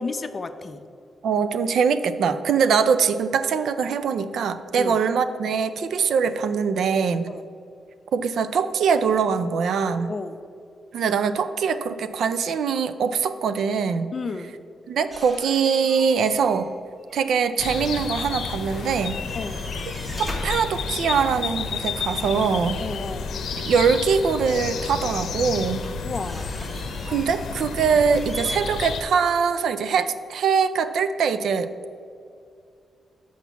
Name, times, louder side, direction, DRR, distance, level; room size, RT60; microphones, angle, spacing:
voice 1, 0.0-0.8 4.8-5.0 7.3-7.4 10.1-10.4 14.1-14.5 19.3-19.7 22.8-23.3 26.0-26.5, left 4 dB, 35° left, 10 dB, 0.5 m, -32 dB
voice 2, 1.2-7.3 8.1-10.1 10.9-14.1 14.9-16.7 17.1-19.2 20.2-22.8 23.6-25.8 27.1-32.0, right 6 dB, 80° right, 12 dB, 0.4 m, -23 dB
sound 1, 15.1-16.7 17.0-18.4 18.7-21.5 23.8-23.9 24.5-28.6, left 1 dB, 15° right, 1.5 m, -40 dB
sound 2, 17.6-29.0, left 5 dB, 80° left, 0.7 m, -31 dB
6.2 x 5.9 x 6.9 m, 2.4 s
cardioid pair, 110°, 0 cm